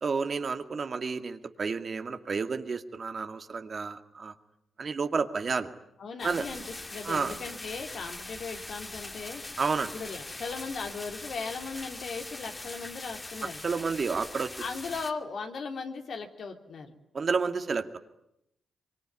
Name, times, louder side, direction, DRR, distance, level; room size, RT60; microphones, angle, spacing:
voice 1, 0.0-4.3 4.8-5.7 6.2-6.4 7.0-7.3 9.6-10.0 13.6-14.6 17.1-18.0, right 5 dB, 50° right, 7 dB, 2.3 m, -30 dB
voice 2, 6.0-6.6 6.9-9.4 9.8-13.6 14.6-16.9, left 4 dB, 65° left, 4 dB, 3.4 m, -38 dB
sound 1, 6.2-15.1, left 2 dB, 30° left, 2.6 m, -42 dB
24.5 x 24.0 x 9.8 m, 0.82 s
supercardioid pair, 45°, 0 cm